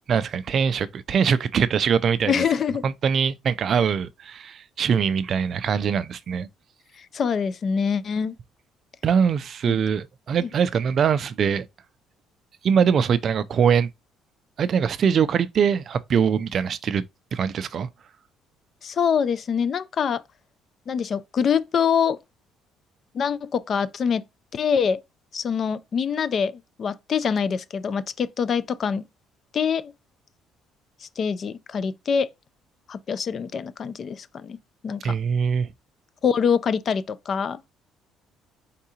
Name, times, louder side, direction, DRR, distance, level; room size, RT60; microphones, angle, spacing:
voice 1, 0.1-2.4 2.8-6.5 9.0-11.7 12.6-13.9 14.6-17.0 17.3-17.9 35.0-35.7, right 7 dB, 45° right, 0.4 m, -22 dB
voice 2, 2.3-2.8 7.0-8.3 9.7-9.8 10.4-10.5 18.8-20.2 20.9-22.2 23.1-24.2 24.5-25.0 25.3-26.5 26.8-29.0 29.5-29.9 31.0-32.3 32.9-34.6 34.8-35.0 36.2-37.7, left 6 dB, 40° left, 0.5 m, -24 dB
4.7 x 3.6 x 2.8 m
cardioid pair, 135°, 0 cm